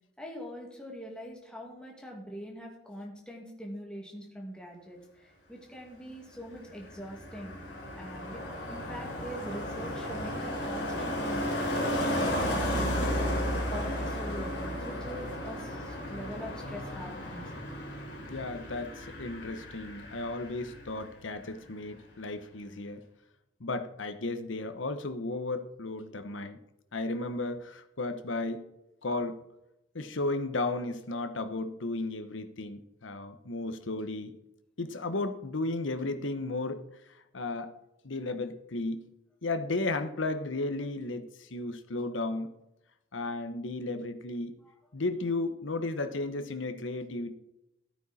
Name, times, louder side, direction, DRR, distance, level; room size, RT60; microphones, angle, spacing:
voice 1, 0.2-7.6 8.0-8.4 8.7-17.5 44.6-44.7, equal, 5° left, -1 dB, 2.3 m, -43 dB
Car passing by, 6.3-21.1 21.4-21.7, equal, 60° left, 3.4 m, -34 dB
voice 2, 18.3-23.0 23.6-26.6 26.9-28.6 29.0-29.4 29.9-34.4 34.8-36.8 37.3-37.7 38.0-39.0 39.4-42.5 43.1-44.6 44.9-47.3, left 2 dB, 85° left, 9 dB, 1.1 m, -34 dB
14.0 x 9.1 x 4.2 m, 0.87 s
head